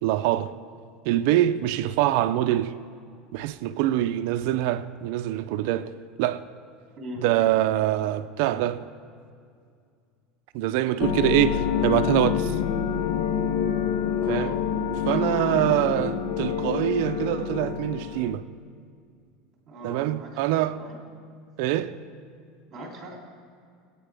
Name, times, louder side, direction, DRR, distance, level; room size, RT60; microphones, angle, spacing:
voice 1, 0.0-0.5 1.0-2.7 3.3-5.9 6.2-6.4 7.2-8.8 10.5-12.6 14.3-14.5 15.1-18.4 19.8-20.8 21.6-21.9, right 13 dB, 65° right, 0.4 m, -24 dB
voice 2, 7.0-7.3 14.2-14.7 15.5-15.9 19.7-20.4 20.7-21.0 22.7-23.2, equal, 30° right, 3.0 m, -39 dB
sound 1, 11.0-18.3, left 7 dB, 80° left, 0.8 m, -27 dB
20.0 x 9.1 x 3.4 m
supercardioid pair, 155°, 0 cm